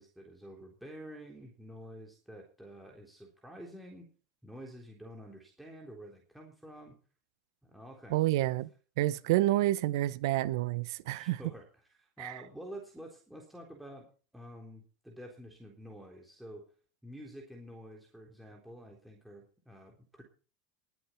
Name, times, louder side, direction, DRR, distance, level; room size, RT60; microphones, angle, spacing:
voice 1, 0.0-4.1 4.4-7.0 7.6-8.6 11.1-14.1 14.3-16.7 17.0-20.2, equal, 5° right, 3.7 m, -49 dB
voice 2, 8.1-8.7 9.0-11.4 12.2-12.3, right 16 dB, 70° right, 0.8 m, -29 dB
21.0 x 8.3 x 4.5 m
hypercardioid pair, 100°, 2 cm